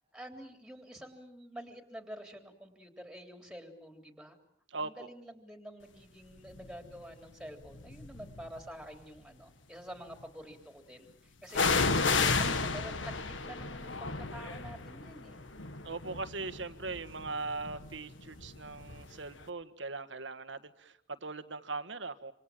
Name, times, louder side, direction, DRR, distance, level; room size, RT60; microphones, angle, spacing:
voice 1, 0.1-4.4 4.8-11.8 12.4-15.4, equal, 5° right, 5 dB, 3.5 m, -48 dB
voice 2, 4.7-5.1 15.8-22.3, right 3 dB, 80° right, 9 dB, 1.6 m, -40 dB
sound 1, 6.6-6.9 7.7-8.6 11.5-19.2 19.4-19.5, left 4 dB, 85° left, 1.8 m, -33 dB
27.5 x 27.0 x 7.5 m, 0.67 s
head